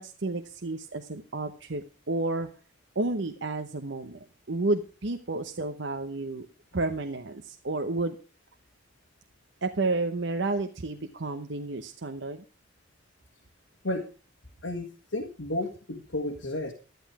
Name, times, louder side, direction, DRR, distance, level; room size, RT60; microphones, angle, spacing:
voice 1, 0.0-2.5 3.0-6.5 6.7-8.2 9.6-12.4, right 2 dB, 65° right, 6 dB, 0.9 m, -31 dB
voice 2, 14.6-16.7, left 1 dB, 85° left, 4 dB, 1.6 m, -32 dB
12.0 x 10.5 x 4.8 m, 0.35 s
head